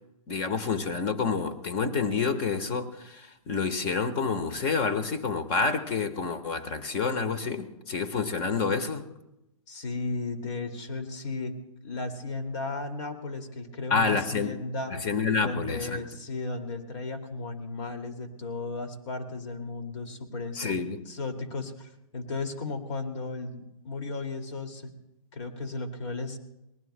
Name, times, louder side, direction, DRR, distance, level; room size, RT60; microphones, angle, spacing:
voice 1, 0.3-9.0 13.9-14.5 14.9-16.0 20.6-21.0, left 5 dB, 30° left, 10 dB, 1.3 m, -28 dB
voice 2, 9.7-11.5 11.8-14.9 15.4-20.8 21.1-24.9 25.3-26.4, left 3 dB, 55° left, 6 dB, 2.3 m, -35 dB
24.5 x 19.5 x 2.2 m, 0.92 s
hypercardioid pair, 140°, 18 cm